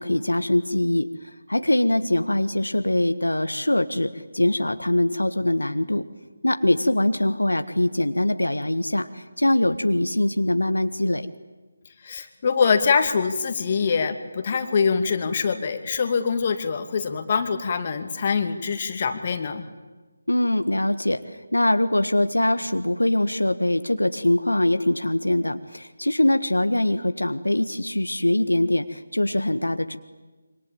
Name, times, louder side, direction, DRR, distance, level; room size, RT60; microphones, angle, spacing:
voice 1, 0.0-6.0 6.4-11.3 20.3-30.0, left 1 dB, 85° left, 9 dB, 1.6 m, -23 dB
voice 2, 12.0-19.7, left 5 dB, 35° left, 7 dB, 2.5 m, -24 dB
26.5 x 25.5 x 8.9 m, 1.3 s
figure-of-eight pair, 155°, 0 cm